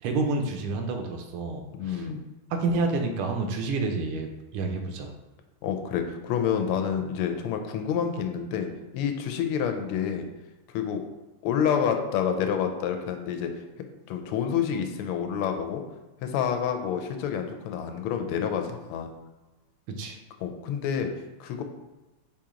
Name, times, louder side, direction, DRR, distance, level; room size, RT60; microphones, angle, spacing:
voice 1, 0.0-2.1 2.5-5.1 20.0-20.2, right 3 dB, 80° right, 4 dB, 1.5 m, -29 dB
voice 2, 1.8-2.2 5.6-8.7 8.9-10.2 10.7-11.0 11.4-13.5 14.1-15.8 16.2-19.1 20.4-21.1 21.4-21.6, left 8 dB, 85° left, 6 dB, 1.5 m, -28 dB
5.0 x 2.9 x 3.6 m, 1.1 s
omnidirectional pair, 2.4 m